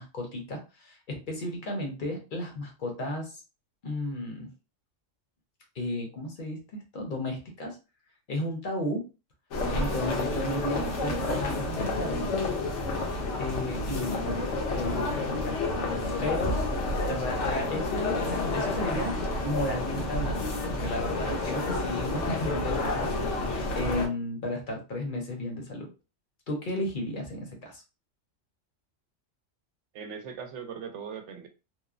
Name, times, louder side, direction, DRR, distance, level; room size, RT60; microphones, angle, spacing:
voice 1, 0.0-3.4 3.8-4.5 5.7-6.6 6.9-7.8 8.3-9.0 9.7-12.3 13.4-15.9 16.2-16.6 16.9-19.2 19.4-23.1 23.7-25.9 26.5-27.8, left 1 dB, 50° left, 0.8 m, -34 dB
sound 1, 9.5-24.1, left 2 dB, 75° left, 1.0 m, -30 dB
voice 2, 29.9-31.5, right 6 dB, 75° right, 0.9 m, -39 dB
3.0 x 2.0 x 2.4 m
omnidirectional pair, 1.3 m